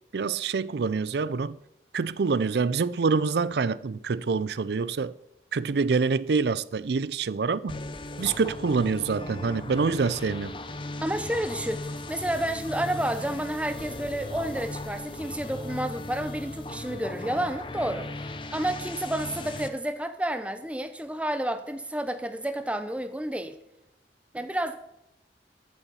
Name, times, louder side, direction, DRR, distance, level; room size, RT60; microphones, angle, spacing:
voice 1, 0.1-1.6 1.9-5.1 5.5-7.8 8.2-10.6, right 4 dB, 70° right, 0.4 m, -26 dB
sound 1, 7.7-19.7, left 2 dB, 30° left, 0.7 m, -37 dB
voice 2, 11.0-23.6 24.3-24.8, right 1 dB, 5° right, 0.7 m, -30 dB
14.0 x 7.0 x 5.5 m
head